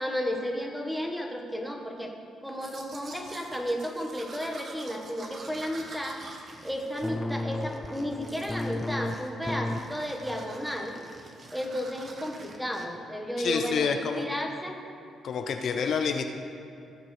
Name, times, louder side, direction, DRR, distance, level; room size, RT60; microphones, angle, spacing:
voice 1, 0.0-2.1 2.4-6.2 6.6-11.0 11.5-14.8, equal, ahead, 2 dB, 1.5 m, -33 dB
Domestic sounds home sounds, 2.5-7.7 8.1-8.8 9.0-9.4 9.7-12.6, right 3 dB, 50° right, 1.3 m, -47 dB
sound 1, 5.2-12.9, right 1 dB, 30° right, 1.3 m, -53 dB
sound 2, 7.0-9.8 10.3-10.6 10.9-11.1, left 2 dB, 15° left, 0.5 m, -33 dB
voice 2, 13.4-14.3 15.2-16.2, left 6 dB, 65° left, 5 dB, 0.7 m, -28 dB
17.0 x 7.5 x 3.3 m, 2.7 s
cardioid pair, 90°, 0 cm